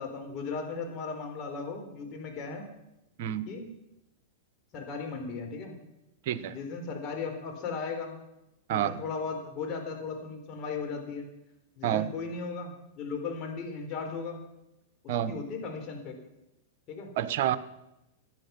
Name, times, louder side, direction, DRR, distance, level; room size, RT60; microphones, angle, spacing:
voice 1, 0.0-2.7 3.5-3.6 4.7-5.8 6.5-8.1 8.7-11.3 11.8-14.4 15.0-16.1 16.9-17.1, left 4 dB, 40° left, 3 dB, 4.0 m, -36 dB
voice 2, 6.2-6.6 8.7-8.9 11.8-12.1 15.1-15.4 17.2-17.6, right 11 dB, 60° right, 13 dB, 1.1 m, -28 dB
16.0 x 10.5 x 6.0 m, 0.90 s
hypercardioid pair, 110°, 0 cm